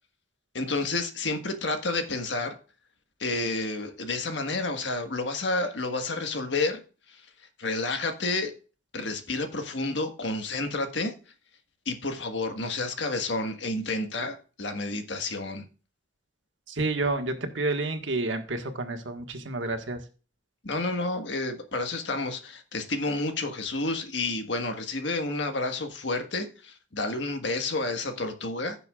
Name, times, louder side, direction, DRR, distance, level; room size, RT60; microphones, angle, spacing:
voice 1, 0.5-2.5 3.2-6.8 7.1-7.2 7.6-8.5 8.9-11.1 11.8-15.6 20.6-28.8, left 2 dB, 70° left, 1.6 m, -30 dB
voice 2, 16.7-20.0, right 2 dB, 90° right, 1.6 m, -29 dB
16.0 x 6.9 x 2.4 m
head